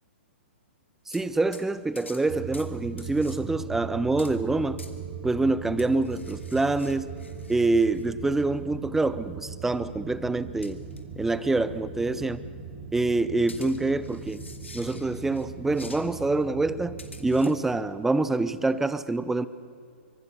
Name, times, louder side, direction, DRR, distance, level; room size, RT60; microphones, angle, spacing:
sound 1, 1.1-1.3 1.5-1.7 2.0-2.2 2.5-2.7 3.0-3.4 4.2-4.4 4.8-4.9 5.8-8.0 8.4-8.5 10.6-11.0 11.3-11.4 13.5-15.5 15.7-16.1 17.0-17.6, left 3 dB, 75° left, 2.7 m, -48 dB
voice 1, 1.1-4.8 5.2-7.1 7.5-10.8 11.2-12.4 12.9-14.4 14.7-19.5, right 2 dB, 5° right, 15 dB, 0.8 m, -26 dB
sound 2, 2.3-17.5, right 6 dB, 40° right, 2.9 m, -39 dB
26.0 x 25.0 x 6.8 m, 2.4 s
figure-of-eight pair, 115°, 7 cm